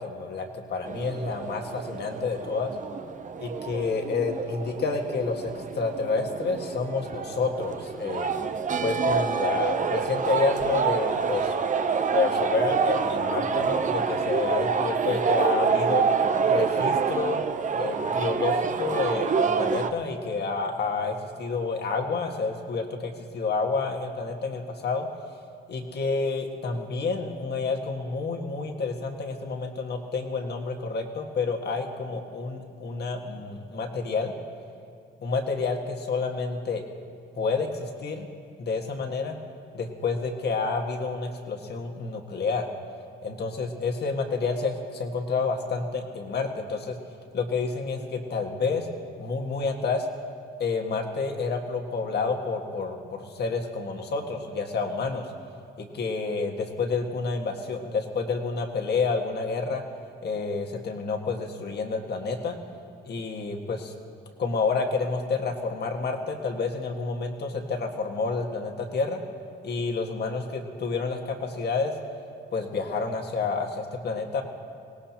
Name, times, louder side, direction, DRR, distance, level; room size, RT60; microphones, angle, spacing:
voice 1, 0.0-2.7 3.4-8.3 8.8-11.5 12.1-16.0 16.4-17.4 17.7-25.1 25.7-34.3 35.2-36.8 37.3-38.3 38.6-39.4 39.7-42.6 43.2-47.0 47.3-48.9 49.2-50.1 50.6-55.3 55.8-59.8 60.2-62.6 63.0-63.9 64.4-69.2 69.6-71.9 72.5-74.4, left 4 dB, 55° left, 3 dB, 1.8 m, -29 dB
sound 1, 0.9-19.9, right 5 dB, 40° right, 0.7 m, -27 dB
23.5 x 18.0 x 3.0 m, 2.3 s
cardioid pair, 90°, 20 cm